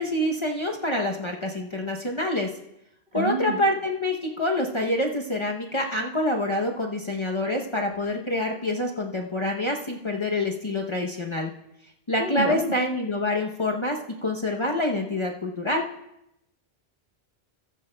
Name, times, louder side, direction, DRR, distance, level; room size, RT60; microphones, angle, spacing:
voice 1, 0.0-2.5 3.1-11.5 12.1-15.8, left 1 dB, 30° left, 0 dB, 0.7 m, -26 dB
voice 2, 3.1-3.6 12.2-12.7, right 3 dB, 55° right, 0 dB, 1.5 m, -28 dB
14.5 x 13.5 x 2.2 m, 0.82 s
omnidirectional pair, 1.1 m